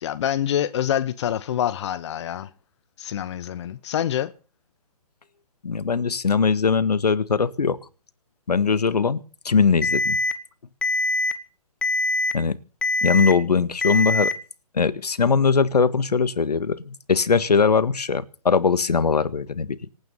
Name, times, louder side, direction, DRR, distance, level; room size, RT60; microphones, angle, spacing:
voice 1, 0.0-2.5 3.0-4.3, left 10 dB, 45° left, 1.0 m, -26 dB
voice 2, 5.6-7.8 8.5-9.2 9.4-10.2 12.3-12.6 13.0-14.3 14.7-19.8, left 5 dB, 80° left, 1.7 m, -21 dB
Alarm, 9.8-10.3 10.8-11.3 11.8-12.3 12.8-13.3 13.8-14.3, left 2 dB, 5° left, 1.1 m, -23 dB
26.0 x 9.5 x 5.6 m
hypercardioid pair, 145°, 20 cm